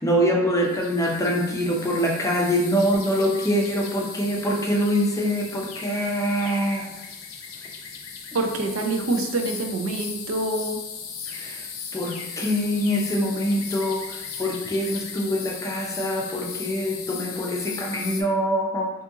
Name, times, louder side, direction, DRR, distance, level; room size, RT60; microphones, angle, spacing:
voice 1, 0.0-6.9 11.3-11.7 11.9-18.9, equal, 15° left, -1 dB, 0.5 m, -24 dB
sound 1, 0.6-18.2, left 6 dB, 85° left, 0.5 m, -37 dB
voice 2, 8.3-10.8, right 2 dB, 75° right, 4 dB, 0.4 m, -26 dB
2.7 x 2.5 x 3.6 m, 0.98 s
head